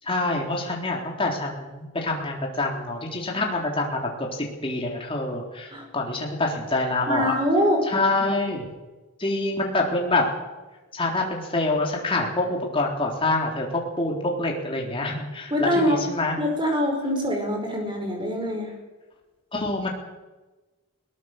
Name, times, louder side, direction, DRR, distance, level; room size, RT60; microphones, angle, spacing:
voice 1, 0.0-7.3 7.9-8.7 9.2-10.3 10.9-16.4 19.5-19.9, left 2 dB, 25° left, 0 dB, 3.8 m, -26 dB
voice 2, 7.1-7.8 15.5-16.0 16.4-18.7, equal, 20° right, 2 dB, 5.1 m, -24 dB
21.5 x 18.5 x 6.7 m, 1.2 s
head